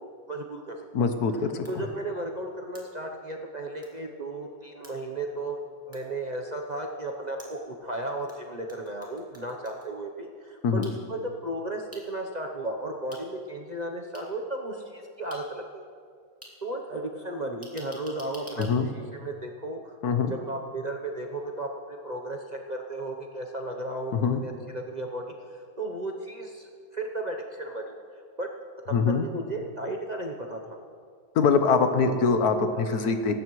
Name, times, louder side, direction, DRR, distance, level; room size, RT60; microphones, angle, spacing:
voice 1, 0.0-1.1 1.7-5.6 5.9-15.8 16.6-18.7 19.1-19.9 20.3-25.2 25.8-28.0 28.4-28.5 29.2-30.8, right 1 dB, 35° right, 1 dB, 0.8 m, -35 dB
voice 2, 0.9-1.8 10.6-10.9 18.6-18.9 20.0-20.3 24.1-24.4 28.9-29.3 31.3-33.3, left 5 dB, 75° left, 7 dB, 1.4 m, -23 dB
sound 1, 1.7-1.8 2.8-2.9 3.8-3.9 4.8-4.9 5.9-6.0 7.4-8.4 8.7-9.9 10.8-10.9 11.9-12.0 13.1-13.2 14.1-14.2 15.3-15.4 16.4-16.5 17.6-18.7, right 1 dB, 10° right, 2.3 m, -48 dB
24.0 x 13.0 x 3.2 m, 2.1 s
omnidirectional pair, 1.7 m